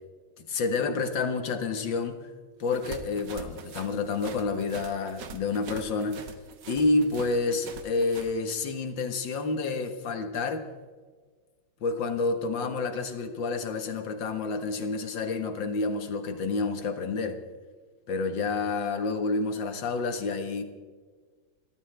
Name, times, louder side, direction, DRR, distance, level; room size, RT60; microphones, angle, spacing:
voice 1, 0.5-2.3 2.6-6.3 6.7-10.7 11.8-17.4 18.1-20.6, left 3 dB, 65° left, 7 dB, 2.2 m, -29 dB
sound 1, 2.6-8.3, right 6 dB, 60° right, 1.7 m, -43 dB
29.5 x 14.0 x 3.4 m, 1.5 s
omnidirectional pair, 2.3 m